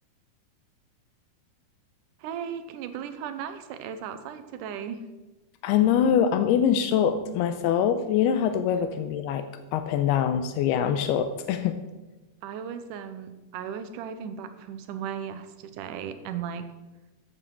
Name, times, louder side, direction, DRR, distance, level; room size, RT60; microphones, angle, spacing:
voice 1, 2.2-5.0 12.4-16.7, right 8 dB, 80° right, 9 dB, 2.0 m, -36 dB
voice 2, 5.6-9.5 9.7-11.8, left 8 dB, 90° left, 9 dB, 2.7 m, -24 dB
15.0 x 9.1 x 4.6 m, 1.1 s
omnidirectional pair, 4.5 m